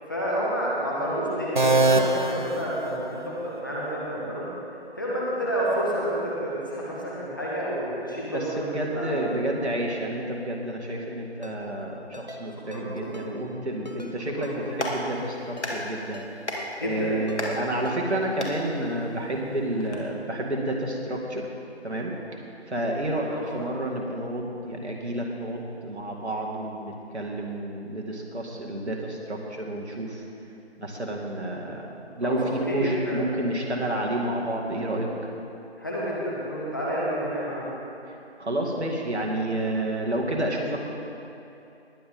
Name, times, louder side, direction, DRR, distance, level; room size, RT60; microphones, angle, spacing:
voice 1, 0.1-4.5 5.0-9.2 12.7-12.9 13.2-13.3 14.4-14.6 16.8-17.2 23.1-23.4 32.2-33.2 35.8-37.7, equal, 20° left, -7 dB, 1.4 m, -29 dB
sound 1, 1.6-3.5, right 2 dB, 45° right, 0.6 m, -23 dB
voice 2, 8.3-16.4 16.7-21.5 21.8-22.1 22.7-30.2 30.8-31.9 32.1-35.1 38.1-40.8, right 1 dB, 75° right, -1 dB, 2.4 m, -30 dB
Ringtone, 11.4-11.6 12.1-12.4 12.7-12.8 13.1-13.3 13.9-14.1 14.4-14.6 14.9-15.0 15.6-15.8 16.1-16.3 16.6-16.7 17.3-17.5 17.9-18.0, left 2 dB, 40° left, 0.9 m, -42 dB
Clapping, 14.5-20.0, left 1 dB, 85° left, 2.5 m, -36 dB
20.0 x 8.8 x 3.8 m, 2.8 s
figure-of-eight pair, 170°, 33 cm